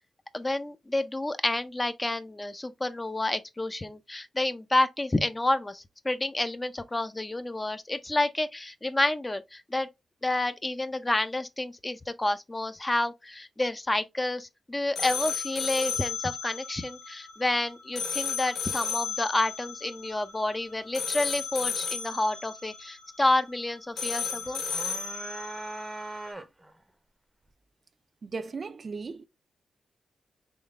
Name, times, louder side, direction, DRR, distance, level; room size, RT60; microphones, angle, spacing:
voice 1, 0.3-9.9 10.2-24.6, left 2 dB, 20° left, 0.6 m, -29 dB
sound 1, 14.9-26.3, left 6 dB, 90° left, 0.8 m, -34 dB
sound 2, 24.4-26.8, right 2 dB, 15° right, 0.7 m, -40 dB
voice 2, 28.2-29.3, right 4 dB, 50° right, 0.5 m, -36 dB
3.8 x 3.1 x 3.5 m
cardioid pair, 80°, 0 cm